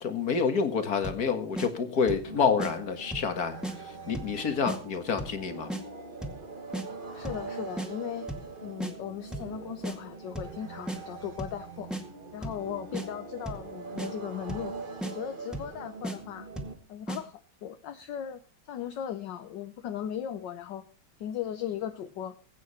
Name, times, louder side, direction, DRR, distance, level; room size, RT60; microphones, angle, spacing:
voice 1, 0.0-3.6 4.1-5.7, left 5 dB, 50° left, 8 dB, 2.2 m, -28 dB
sound 1, 1.0-1.3 1.6-1.7 2.1-2.3 2.6-2.7 3.1-3.3 3.6-3.8 4.1-4.4 4.7-4.8 5.2-5.4 5.7-5.8 6.2-6.4 6.7-6.9 7.2-7.5 7.8-7.9 8.3-8.5 8.8-8.9 9.3-9.5 9.8-10.0 10.3-10.6 10.9-11.0 11.4-11.6 11.9-12.0 12.4-12.6 12.9-13.1 13.5-13.7 14.0-14.1 14.5-14.7 15.0-15.1 15.5-15.7 16.0-16.2 16.6-16.8 17.1-17.2, right 1 dB, ahead, 1.9 m, -35 dB
sound 2, 2.2-16.8, right 4 dB, 30° right, 1.2 m, -43 dB
voice 2, 7.1-8.3 8.6-11.9 12.3-14.7 15.0-16.5 16.9-18.4 18.7-20.8 21.2-22.4, left 10 dB, 65° left, 10 dB, 1.5 m, -37 dB
21.0 x 9.1 x 4.3 m, 0.37 s
omnidirectional pair, 2.2 m